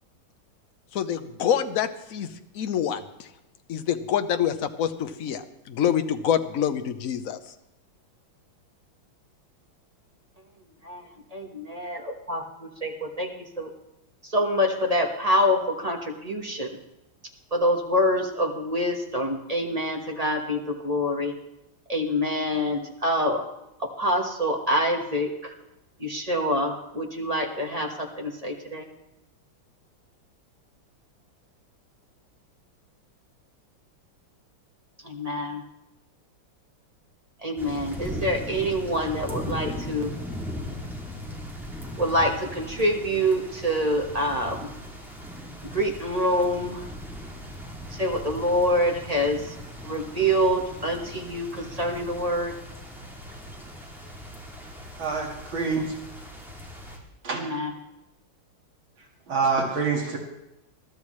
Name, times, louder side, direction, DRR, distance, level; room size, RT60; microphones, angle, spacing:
voice 1, 0.9-3.3 3.7-7.4, left 9 dB, 60° left, 9 dB, 0.9 m, -26 dB
voice 2, 11.3-13.7 14.2-16.8 17.5-21.4 21.9-23.5 23.8-25.5 26.0-28.9 35.0-35.6 37.4-40.1 42.0-44.7 45.6-46.9 47.9-49.5 49.8-52.5 57.3-57.7, equal, 20° right, 1 dB, 1.2 m, -26 dB
sound 1, 37.6-57.0, equal, ahead, 2.5 m, -38 dB
voice 3, 55.0-55.9 57.2-57.4 59.3-60.2, right 4 dB, 70° right, -1 dB, 2.8 m, -26 dB
21.0 x 13.0 x 3.2 m, 0.89 s
omnidirectional pair, 2.3 m